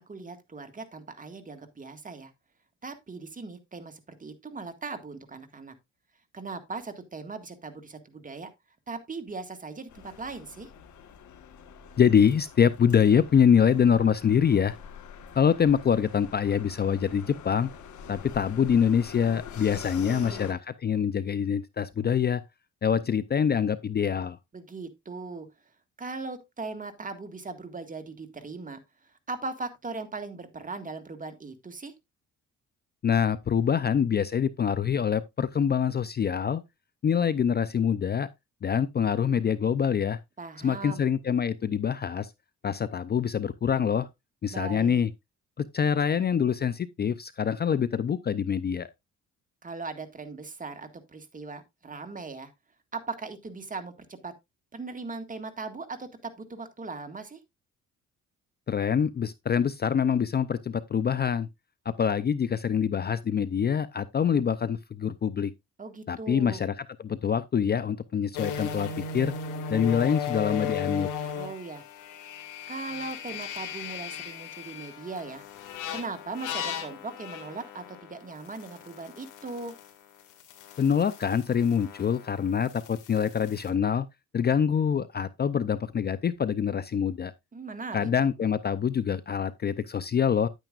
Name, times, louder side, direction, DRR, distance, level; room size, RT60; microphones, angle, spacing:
voice 1, 0.1-2.3 2.8-5.7 6.3-8.5 8.9-10.7 19.6-20.4 24.5-25.5 26.0-28.8 29.3-31.9 40.4-41.1 44.5-45.0 49.6-52.5 52.9-54.3 54.7-57.4 65.8-66.6 71.4-71.8 72.7-75.5 75.9-79.8 87.5-88.1, right 3 dB, 25° right, 1.8 m, -39 dB
sound 1, 9.9-20.5, left 8 dB, 70° left, 1.4 m, -45 dB
voice 2, 12.0-14.8 15.3-17.7 18.1-22.4 22.8-24.4 33.0-36.6 37.0-38.3 38.6-40.2 40.6-42.3 42.6-44.1 44.4-45.1 45.6-48.9 58.7-61.5 62.0-65.5 66.1-69.3 69.7-71.1 80.8-84.1 84.3-87.3 87.9-90.5, left 7 dB, 35° left, 0.5 m, -25 dB
sound 2, 68.3-79.9 80.2-83.7, left 7 dB, 90° left, 2.1 m, -37 dB
9.9 x 9.1 x 2.4 m
cardioid pair, 90°, 30 cm